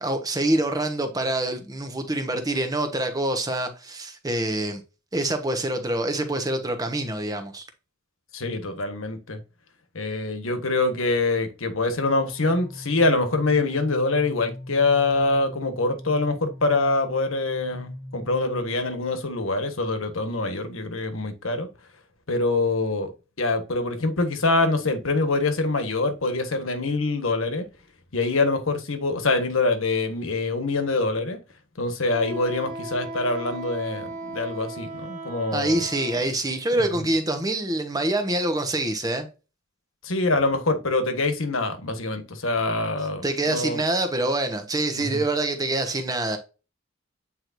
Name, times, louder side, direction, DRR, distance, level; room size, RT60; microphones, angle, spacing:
voice 1, 0.0-4.8 5.1-7.7 35.5-39.3 43.2-46.4, right 1 dB, 20° right, 1.1 m, -25 dB
voice 2, 8.3-9.4 9.9-21.7 22.3-23.1 23.4-27.7 28.1-31.4 31.8-35.8 36.7-37.1 40.0-43.8 45.0-45.2, left 3 dB, 70° left, 1.4 m, -25 dB
sound 1, 11.9-18.6, left 1 dB, 80° right, 2.3 m, -40 dB
Wind instrument woodwind instrument, 32.1-36.2, right 2 dB, 40° right, 1.8 m, -36 dB
8.5 x 4.6 x 2.6 m
head